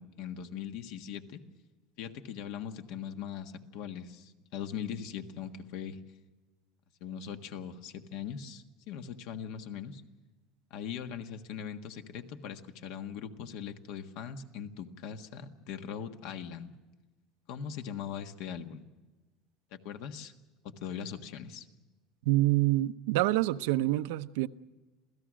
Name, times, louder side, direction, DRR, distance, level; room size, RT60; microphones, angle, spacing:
voice 1, 0.0-1.4 2.0-6.0 7.0-10.0 10.7-16.7 17.5-18.8 19.7-20.3 20.6-21.7, left 8 dB, 65° left, 1.6 m, -40 dB
voice 2, 22.3-24.5, right 17 dB, 85° right, 0.7 m, -26 dB
27.5 x 16.5 x 6.3 m
cardioid pair, 160°, 0 cm